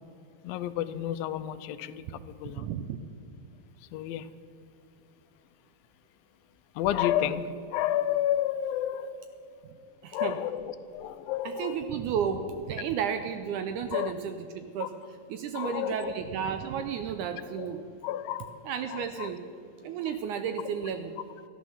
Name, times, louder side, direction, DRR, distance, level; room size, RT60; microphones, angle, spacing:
voice 1, 0.4-2.7 3.9-4.3 6.8-9.2 10.1-11.8 13.9-14.1 14.8-14.9 15.5-16.1 17.6-17.7 18.0-18.6 18.9-19.3, left 11 dB, 85° left, 12 dB, 2.4 m, -31 dB
voice 2, 2.2-3.0 10.0-10.4 11.5-17.8 18.7-19.4 19.8-21.2, right 7 dB, 85° right, 9 dB, 1.8 m, -33 dB
14.0 x 10.0 x 7.1 m, 2.6 s
omnidirectional pair, 4.0 m